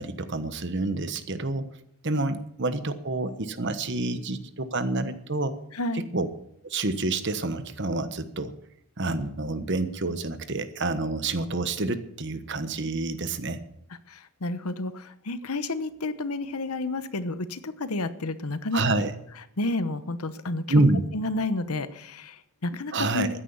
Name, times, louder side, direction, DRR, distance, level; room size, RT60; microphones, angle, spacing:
voice 1, 0.0-1.7 2.0-5.6 5.9-6.3 6.6-8.5 9.0-13.6 18.7-19.1 20.7-21.0 22.9-23.3, right 2 dB, 50° right, 11 dB, 1.2 m, -28 dB
voice 2, 5.7-6.1 14.1-19.0 19.6-20.6 21.1-23.3, left 2 dB, 80° left, 13 dB, 1.0 m, -31 dB
14.5 x 10.0 x 7.1 m, 0.74 s
head